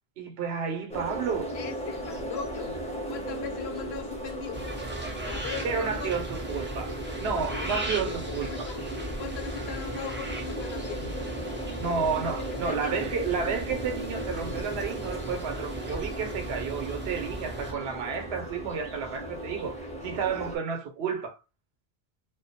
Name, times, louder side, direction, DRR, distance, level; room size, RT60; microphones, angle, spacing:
voice 1, 0.2-1.5 5.6-8.7 11.8-21.4, right 6 dB, 80° right, 0.9 m, -31 dB
sound 1, 0.9-20.6, right 1 dB, 5° left, 0.7 m, -37 dB
voice 2, 1.5-2.8 3.1-4.7 5.2-6.2 7.4-11.2 12.2-12.3 12.6-13.0, left 8 dB, 80° left, 0.8 m, -40 dB
sound 2, 4.5-17.7, right 1 dB, 20° right, 0.3 m, -37 dB
2.3 x 2.1 x 2.7 m
omnidirectional pair, 1.0 m